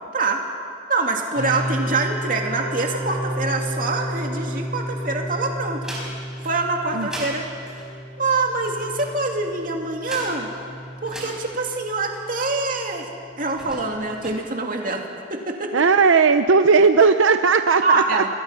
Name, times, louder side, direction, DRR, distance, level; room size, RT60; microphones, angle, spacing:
voice 1, 0.9-5.8 6.4-7.4 8.2-10.5 11.0-13.1 13.4-15.0 15.3-15.8 17.8-18.3, right 3 dB, 40° right, 2 dB, 2.5 m, -25 dB
sound 1, 1.3-14.2, equal, 65° left, 3.8 m, -32 dB
sound 2, 4.3-5.2 5.6-12.7 13.4-14.4, right 1 dB, 5° right, 5.0 m, -39 dB
voice 2, 15.7-18.2, right 5 dB, 75° right, 9 dB, 0.6 m, -16 dB
29.0 x 22.0 x 5.7 m, 2.3 s
head